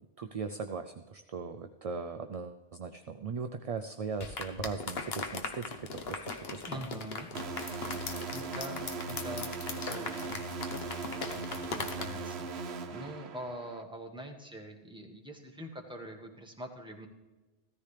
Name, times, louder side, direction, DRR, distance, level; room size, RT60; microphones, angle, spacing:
voice 1, 0.2-6.8, right 5 dB, 50° right, 7 dB, 0.5 m, -39 dB
sound 1, 4.2-12.0, left 4 dB, 70° left, 1.2 m, -39 dB
voice 2, 6.7-7.3 8.3-10.5 11.1-11.4 11.7-17.1, equal, 5° right, 1 dB, 1.5 m, -44 dB
sound 2, 7.3-13.8, right 3 dB, 80° right, 1.1 m, -39 dB
15.5 x 13.5 x 3.3 m, 1.2 s
omnidirectional pair, 1.1 m